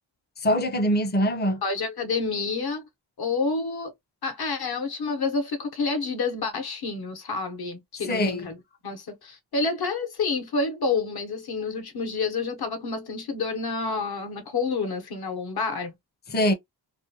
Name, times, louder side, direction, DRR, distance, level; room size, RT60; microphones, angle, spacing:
voice 1, 0.4-1.6 8.1-8.5 16.3-16.5, equal, 25° left, 0.6 m, -23 dB
voice 2, 1.6-2.9 3.2-3.9 4.2-8.6 8.8-15.9, left 4 dB, 60° left, 1.0 m, -29 dB
2.6 x 2.2 x 2.7 m
wide cardioid pair, 105°, 42 cm